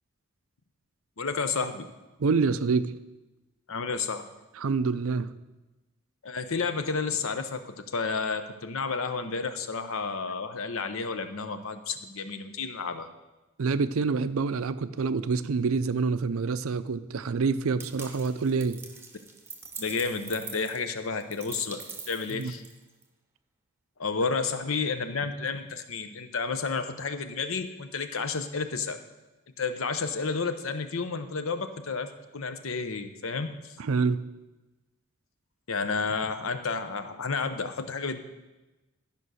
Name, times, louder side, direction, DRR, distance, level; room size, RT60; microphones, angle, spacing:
voice 1, 1.2-1.9 3.7-4.2 6.2-13.1 19.8-22.6 24.0-29.0 29.6-33.7 35.7-38.2, left 4 dB, 70° left, 9 dB, 0.8 m, -31 dB
voice 2, 2.2-2.9 4.6-5.3 13.6-18.8 22.3-22.5 33.8-34.2, right 4 dB, 70° right, 13 dB, 0.5 m, -27 dB
sound 1, 17.8-23.0, right 4 dB, 10° right, 0.8 m, -44 dB
12.5 x 5.3 x 6.3 m, 1.1 s
head